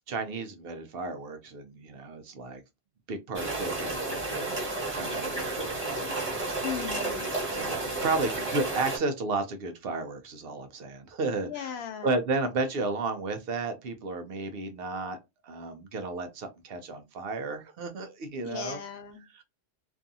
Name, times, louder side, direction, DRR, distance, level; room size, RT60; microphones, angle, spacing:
voice 1, 0.1-2.6 3.1-6.6 7.5-7.8 8.0-11.7 12.0-15.2 15.4-18.8 19.3-19.4, right 3 dB, 70° right, 0.8 m, -33 dB
sound 1, 3.3-9.0, right 2 dB, 10° right, 1.2 m, -32 dB
voice 2, 6.6-7.3 11.5-12.2 18.4-19.2, left 9 dB, 80° left, 0.9 m, -37 dB
2.6 x 2.3 x 2.6 m
omnidirectional pair, 1.1 m